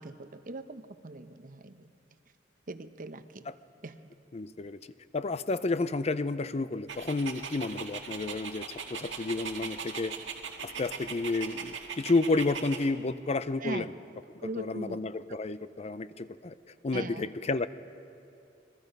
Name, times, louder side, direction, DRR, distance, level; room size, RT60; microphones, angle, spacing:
voice 1, 0.0-1.9 2.7-3.5 3.8-4.0 13.6-13.9 14.4-15.0 16.9-17.3, right 2 dB, 45° right, 10 dB, 0.9 m, -40 dB
voice 2, 4.3-4.8 5.1-10.2 10.6-13.9 14.6-16.5 16.8-17.7, left 3 dB, 35° left, 14 dB, 0.5 m, -31 dB
Dog, 6.9-12.9, right 6 dB, 70° right, 1.9 m, -40 dB
26.5 x 21.5 x 5.4 m, 2.6 s
head